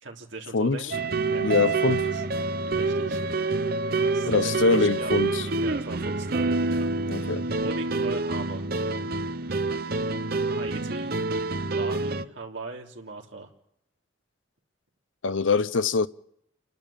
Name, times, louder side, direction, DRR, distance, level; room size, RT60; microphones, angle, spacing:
voice 1, 0.0-1.7 2.0-2.2 2.8-3.7 4.1-5.2 5.6-8.7 10.4-11.2 11.7-13.5, right 3 dB, 70° right, 3.3 m, -40 dB
sound 1, 0.9-12.2, right 3 dB, 50° right, 0.8 m, -27 dB
voice 2, 1.4-2.0 4.3-5.5 7.1-7.4 15.2-16.1, left 4 dB, 80° left, 0.7 m, -23 dB
29.5 x 12.0 x 7.3 m
head